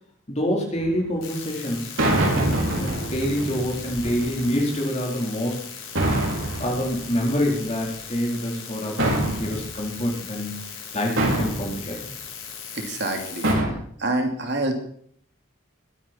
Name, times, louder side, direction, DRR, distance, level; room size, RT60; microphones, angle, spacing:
voice 1, 0.3-1.9 2.3-5.6 6.6-10.7 10.9-12.1, equal, 30° left, 0 dB, 4.2 m, -26 dB
sound 1, 0.8-1.0 2.0-4.6 6.0-7.7 9.0-9.9 11.2-11.9 13.4-13.7, right 1 dB, 80° right, 5.6 m, -25 dB
sound 2, 1.2-13.5, left 6 dB, 65° left, 7.8 m, -39 dB
voice 2, 12.7-13.4 14.0-14.7, right 2 dB, 55° right, 4 dB, 2.8 m, -26 dB
21.5 x 10.0 x 4.5 m, 0.62 s
head